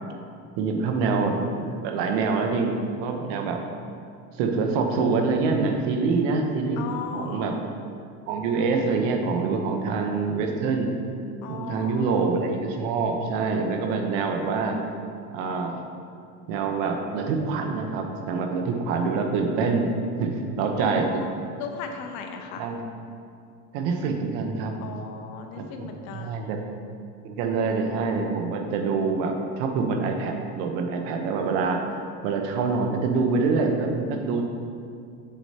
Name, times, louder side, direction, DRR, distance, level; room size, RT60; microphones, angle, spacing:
voice 1, 0.6-2.8 3.0-3.6 4.4-7.5 8.3-11.0 11.5-14.8 15.3-15.8 16.5-19.9 20.2-21.2 22.6-22.8 23.7-24.7 25.6-26.6 27.2-31.8 32.2-34.4, right 4 dB, 70° right, 3 dB, 1.1 m, -25 dB
voice 2, 6.8-7.6 11.4-12.2 20.8-22.7 24.8-26.6, left 6 dB, 75° left, 4 dB, 1.0 m, -37 dB
7.4 x 7.0 x 2.9 m, 2.3 s
supercardioid pair, 90°, 44 cm